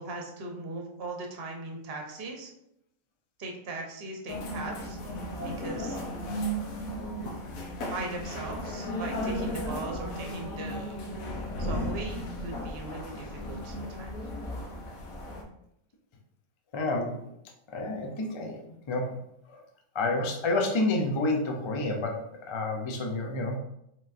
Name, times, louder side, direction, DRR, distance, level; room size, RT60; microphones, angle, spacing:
voice 1, 0.0-2.5 3.4-5.0 5.4-6.0 7.9-11.1 11.6-14.2, right 2 dB, 50° right, 1 dB, 1.0 m, -39 dB
sound 1, 4.3-15.4, equal, 85° left, 1.2 m, -35 dB
voice 2, 16.7-17.2 17.7-18.6 18.9-19.2 19.5-19.6 19.9-23.6, left 2 dB, 45° left, 1 dB, 0.4 m, -29 dB
5.1 x 3.7 x 2.5 m, 0.80 s
omnidirectional pair, 1.4 m